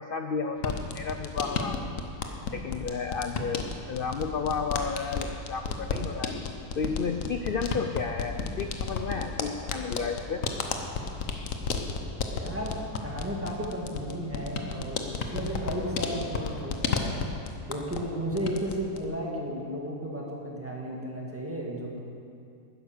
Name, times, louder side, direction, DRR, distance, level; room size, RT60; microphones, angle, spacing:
voice 1, 0.0-1.9 2.5-3.6 3.9-6.3 6.8-10.4, left 5 dB, 75° left, 6 dB, 0.5 m, -32 dB
sound 1, 0.6-18.1 18.4-19.0, left 4 dB, 60° left, 1.2 m, -33 dB
voice 2, 12.3-12.7 13.0-17.2 17.7-22.0, equal, 10° right, -3 dB, 1.7 m, -34 dB
11.5 x 9.9 x 6.6 m, 2.5 s
omnidirectional pair, 1.7 m